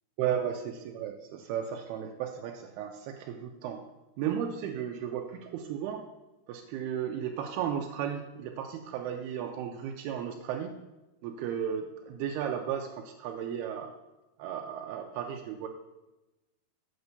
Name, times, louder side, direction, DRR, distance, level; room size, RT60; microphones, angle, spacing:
voice 1, 0.2-3.8 4.2-6.0 6.5-10.7 11.2-13.9 14.4-15.7, right 9 dB, 85° right, 2 dB, 2.6 m, -34 dB
8.1 x 5.3 x 6.5 m, 1.0 s
omnidirectional pair, 4.5 m